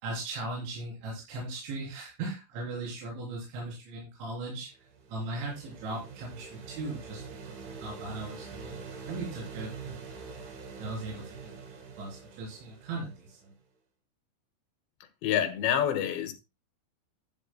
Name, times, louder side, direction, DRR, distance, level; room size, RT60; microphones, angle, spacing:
voice 1, 0.0-4.7 5.1-10.2 10.8-13.5, right 2 dB, 75° right, 5.9 m, -38 dB
sound 1, 4.6-13.4, right 5 dB, 55° right, 2.4 m, -45 dB
voice 2, 15.2-16.3, left 10 dB, 75° left, 3.4 m, -27 dB
13.0 x 10.0 x 2.2 m
omnidirectional pair, 5.4 m